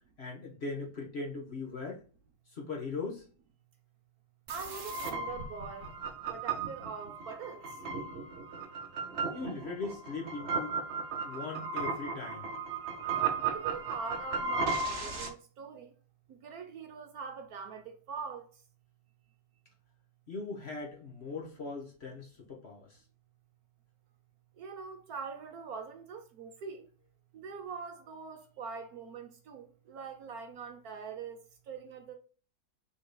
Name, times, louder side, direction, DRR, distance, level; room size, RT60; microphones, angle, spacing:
voice 1, 0.2-2.0 2.5-3.2 9.3-10.8 11.2-12.5 20.3-23.0, left 3 dB, 40° left, 1.3 m, -40 dB
sound 1, 4.5-15.3, right 4 dB, 50° right, 0.9 m, -35 dB
voice 2, 4.5-5.9 6.3-7.6 13.5-15.9 16.3-18.4 24.6-26.9 27.3-31.4 31.7-32.1, right 5 dB, 65° right, 1.2 m, -43 dB
6.0 x 3.8 x 2.2 m
omnidirectional pair, 1.9 m